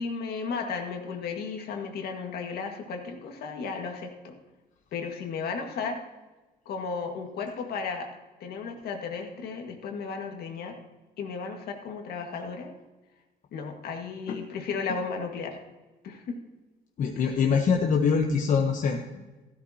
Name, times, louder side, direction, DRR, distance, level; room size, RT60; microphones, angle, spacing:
voice 1, 0.0-4.3 4.9-6.0 6.7-8.1 8.4-10.7 11.2-12.7 13.5-15.6 16.0-16.4 17.2-17.4, left 5 dB, 70° left, 3 dB, 1.9 m, -34 dB
voice 2, 17.0-19.0, left 6 dB, 50° left, 2 dB, 1.1 m, -24 dB
13.5 x 12.5 x 2.9 m, 1.2 s
cardioid pair, 110°, 17 cm